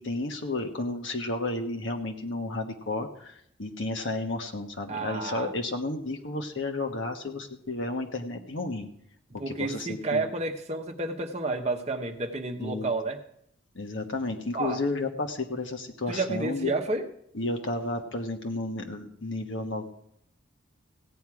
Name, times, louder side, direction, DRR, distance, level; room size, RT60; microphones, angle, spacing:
voice 1, 0.0-8.9 9.3-10.2 12.6-13.0 13.7-16.7 17.3-19.9, left 2 dB, 65° left, 4 dB, 1.3 m, -32 dB
voice 2, 4.9-5.5 9.4-13.2 14.5-14.8 16.1-17.1, right 2 dB, 30° right, 5 dB, 1.0 m, -30 dB
16.0 x 9.2 x 4.8 m, 0.72 s
head